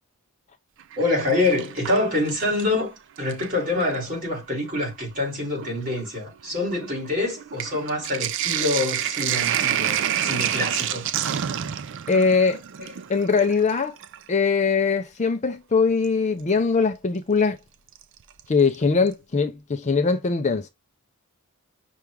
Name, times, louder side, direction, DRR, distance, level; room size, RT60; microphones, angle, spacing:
Sink (filling or washing), 0.8-2.8 3.2-4.0 4.8-4.9 5.2-14.3 16.0-16.1 18.0-18.4 18.7-18.8 19.1-19.2, right 10 dB, 55° right, 0.4 m, -29 dB
voice 1, 1.0-11.1 12.8-12.9, left 2 dB, 35° right, 3.2 m, -26 dB
voice 2, 12.1-12.6 13.1-14.0 14.3-17.6 18.5-20.7, left 4 dB, 30° left, 0.5 m, -21 dB
5.7 x 2.4 x 3.3 m
head